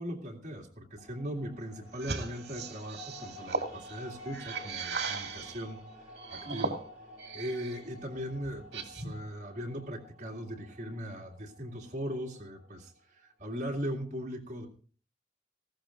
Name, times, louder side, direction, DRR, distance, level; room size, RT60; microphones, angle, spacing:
voice 1, 0.0-6.8 7.3-14.7, equal, 40° right, -1 dB, 2.2 m, -39 dB
sound 1, 1.0-13.2, left 1 dB, 5° right, 5.3 m, -51 dB
sound 2, 1.9-5.6 6.1-7.8 8.2-9.2, right 3 dB, 70° right, 2.1 m, -38 dB
19.0 x 15.0 x 2.5 m, 0.41 s
head